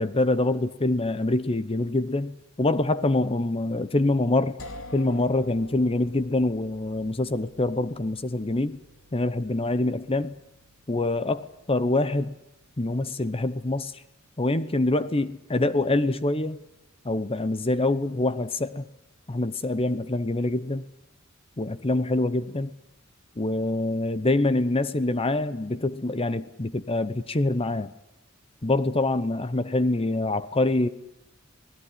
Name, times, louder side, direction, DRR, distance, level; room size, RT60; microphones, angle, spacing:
voice 1, 0.0-4.6 4.9-8.8 9.1-10.4 10.9-12.3 12.8-13.9 14.4-16.6 17.0-18.9 19.3-20.8 21.6-22.7 23.4-27.9 28.6-30.9, left 2 dB, 25° left, 0.9 m, -25 dB
sound 1, 4.6-14.4, left 2 dB, 80° left, 2.7 m, -49 dB
26.5 x 18.0 x 10.0 m
head